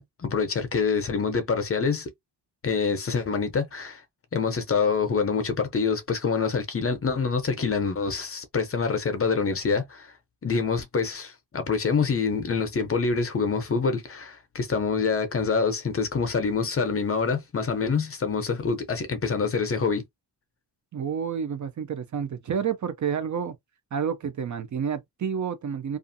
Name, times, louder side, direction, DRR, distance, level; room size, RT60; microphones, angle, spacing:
voice 1, 0.0-2.1 2.6-4.0 4.3-10.1 10.4-20.0, left 5 dB, 35° left, 0.6 m, -26 dB
voice 2, 20.9-23.5 23.9-26.0, right 7 dB, 45° right, 0.5 m, -29 dB
2.4 x 2.4 x 2.6 m
cardioid pair, 110°, 42 cm